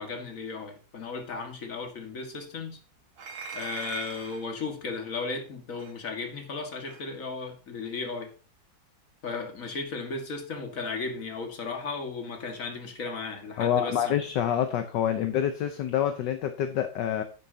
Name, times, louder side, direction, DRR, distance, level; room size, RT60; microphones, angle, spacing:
voice 1, 0.0-2.8 3.5-8.3 9.2-14.1, left 4 dB, 45° left, 2.1 m, -35 dB
sound 1, 3.2-4.5 5.8-5.9 6.9-7.0, right 6 dB, 80° right, 2.3 m, -40 dB
voice 2, 13.6-17.2, left 9 dB, 65° left, 1.4 m, -27 dB
10.0 x 9.6 x 2.8 m
omnidirectional pair, 2.2 m